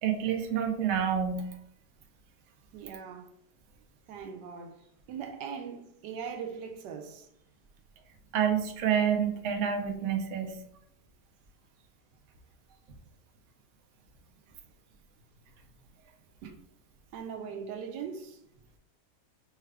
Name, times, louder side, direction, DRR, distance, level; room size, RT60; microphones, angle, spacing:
voice 1, 0.0-1.5 8.3-10.6 16.4-16.5, right 8 dB, 65° right, 0.8 m, -28 dB
voice 2, 2.7-3.3 4.1-7.3 17.1-18.4, right 6 dB, 85° right, 1.2 m, -40 dB
5.4 x 2.4 x 3.2 m
omnidirectional pair, 1.8 m